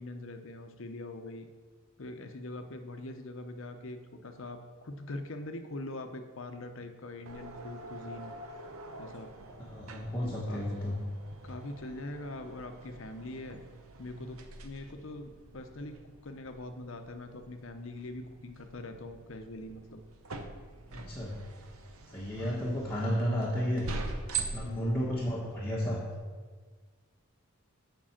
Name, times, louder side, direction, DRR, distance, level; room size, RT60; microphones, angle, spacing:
voice 1, 0.0-1.5 2.0-8.3 9.0-9.3 10.2-10.6 11.4-13.6 14.0-20.0 22.4-22.8 24.6-25.1, left 2 dB, 60° left, 7 dB, 0.8 m, -43 dB
sound 1, 7.3-26.2, right 4 dB, 70° right, 0.8 m, -44 dB
voice 2, 9.6-11.0 20.9-21.3 22.1-23.9 24.4-26.0, equal, 10° left, -6 dB, 1.2 m, -32 dB
7.5 x 5.4 x 7.3 m, 1.5 s
head